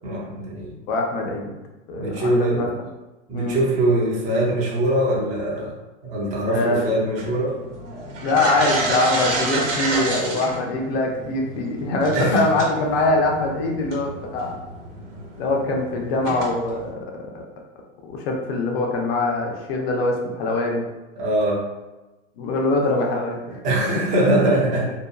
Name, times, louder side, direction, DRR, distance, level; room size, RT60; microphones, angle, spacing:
voice 1, 0.0-0.7 2.0-2.7 3.3-5.7 6.0-7.6 12.1-12.4 21.2-21.6 23.5-24.9, right 1 dB, 20° right, -3 dB, 0.5 m, -22 dB
voice 2, 0.9-1.5 1.9-2.7 3.3-3.6 6.5-7.0 8.2-14.6 15.4-17.4 18.0-20.8 22.4-23.4 23.9-24.0 24.4-24.5, left 2 dB, 55° left, 1 dB, 0.6 m, -23 dB
sound 1, 7.2-16.9, right 2 dB, 80° right, 0.9 m, -30 dB
2.8 x 2.2 x 2.3 m, 1.1 s
supercardioid pair, 145°, 36 cm